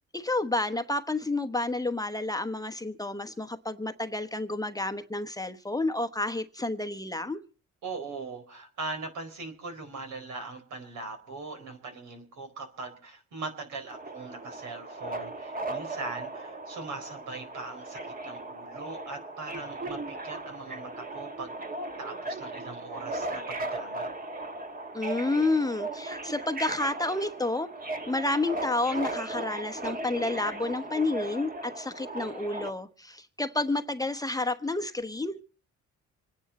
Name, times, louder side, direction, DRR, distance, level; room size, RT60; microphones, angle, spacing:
voice 1, 0.1-7.4 24.9-27.7 28.1-35.4, left 2 dB, 10° left, 1.0 m, -30 dB
voice 2, 7.8-21.6 22.0-24.1, right 3 dB, 75° right, 4.3 m, -40 dB
Subway metro underground, 13.9-32.7, right 2 dB, 30° right, 1.6 m, -37 dB
26.5 x 10.0 x 4.2 m
cardioid pair, 90°, 30 cm